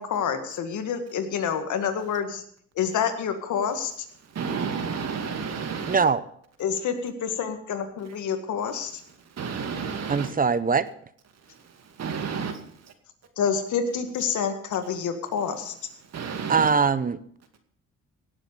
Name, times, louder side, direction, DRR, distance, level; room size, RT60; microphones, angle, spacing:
voice 1, 0.0-2.4 2.8-4.1 6.6-9.0 13.4-15.7, left 7 dB, 75° left, 8 dB, 1.9 m, -28 dB
voice 2, 4.2-6.0 9.3-10.3 11.5-12.9 16.1-16.7, right 6 dB, 55° right, 6 dB, 2.4 m, -32 dB
voice 3, 5.9-6.2 10.1-10.9 16.5-17.2, right 5 dB, 30° right, 15 dB, 0.9 m, -22 dB
17.0 x 7.5 x 6.9 m, 0.62 s
cardioid pair, 90°, 30 cm